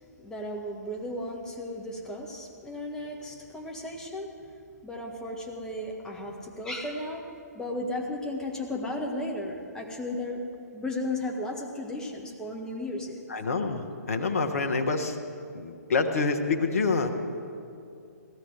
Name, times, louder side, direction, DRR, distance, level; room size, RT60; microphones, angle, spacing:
voice 1, 0.2-4.3 4.8-10.4 10.7-13.2, left 1 dB, 5° left, 0 dB, 1.5 m, -35 dB
voice 2, 13.3-15.2 15.5-17.1, left 4 dB, 55° left, 6 dB, 1.3 m, -27 dB
17.5 x 13.0 x 4.8 m, 2.6 s
figure-of-eight pair, 130°, 9 cm